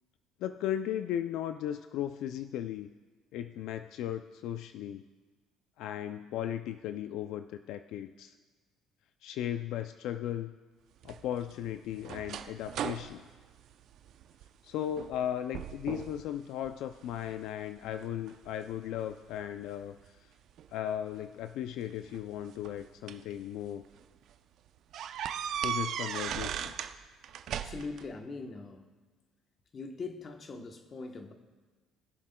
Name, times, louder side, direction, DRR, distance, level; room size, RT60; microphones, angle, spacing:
voice 1, 0.4-2.9 3.3-5.0 5.8-8.3 9.2-10.5 11.0-13.2 14.6-20.3 20.7-23.9 25.6-26.7, left 11 dB, 75° left, 9 dB, 0.3 m, -36 dB
sound 1, 11.0-14.5 14.9-15.2 15.5-16.2 16.6-17.4 18.0-19.4 20.6-20.7 21.9-23.3 23.8-24.0 24.3-24.4 24.9-27.0 27.2-28.1, right 9 dB, 65° right, 0.5 m, -38 dB
voice 2, 27.5-28.8 29.7-31.3, left 4 dB, 40° left, 5 dB, 1.0 m, -41 dB
20.0 x 7.4 x 2.2 m, 1.4 s
cardioid pair, 105°, 0 cm